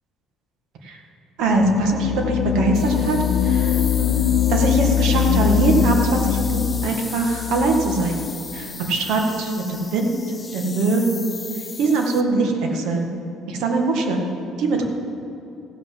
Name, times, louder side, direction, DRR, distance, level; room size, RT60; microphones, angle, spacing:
voice 1, 1.4-3.2 3.4-4.2 4.5-8.2 8.5-10.2 10.5-11.3 11.8-13.1 13.5-14.3 14.6-14.8, right 3 dB, 70° right, 2 dB, 1.8 m, -22 dB
sound 1, 1.5-8.6, left 10 dB, 70° left, 0.5 m, -22 dB
sound 2, 2.7-12.2, left 4 dB, 20° left, 0.6 m, -36 dB
16.0 x 5.9 x 7.5 m, 2.8 s
cardioid pair, 150°, 0 cm